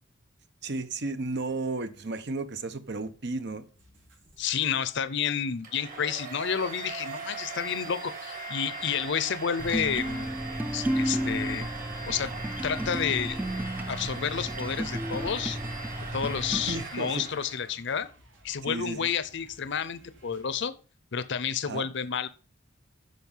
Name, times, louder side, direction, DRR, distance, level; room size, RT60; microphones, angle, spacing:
voice 1, 0.6-3.7 16.7-17.3 18.6-19.1 21.7-21.9, right 3 dB, 60° right, 1.0 m, -33 dB
sound 1, 3.7-4.7 5.0-20.6, right 1 dB, 90° right, 4.2 m, -59 dB
voice 2, 4.4-10.3 10.7-11.7 12.1-12.3 12.6-13.4 13.9-15.6 16.1-18.1 18.4-20.7 21.1-22.3, left 7 dB, 65° left, 0.7 m, -30 dB
Domestic sounds home sounds, 5.6-17.7, right 3 dB, 45° right, 2.9 m, -40 dB
sound 2, 9.6-16.8, equal, 10° right, 0.5 m, -33 dB
9.4 x 6.2 x 5.5 m
head